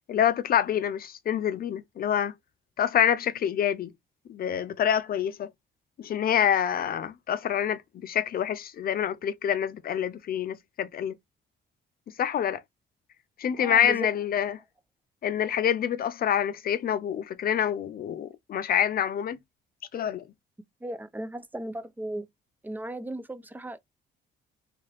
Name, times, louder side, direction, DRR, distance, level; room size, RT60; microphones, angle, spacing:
voice 1, 0.1-2.3 2.8-3.9 4.3-5.5 6.0-11.1 12.2-12.6 13.4-14.6 15.2-19.4 19.9-20.3, left 9 dB, 50° left, 0.4 m, -26 dB
voice 2, 13.6-14.1 20.8-22.3 22.6-23.8, right 1 dB, 10° right, 0.4 m, -36 dB
2.8 x 2.4 x 2.9 m
cardioid pair, 90°, 20 cm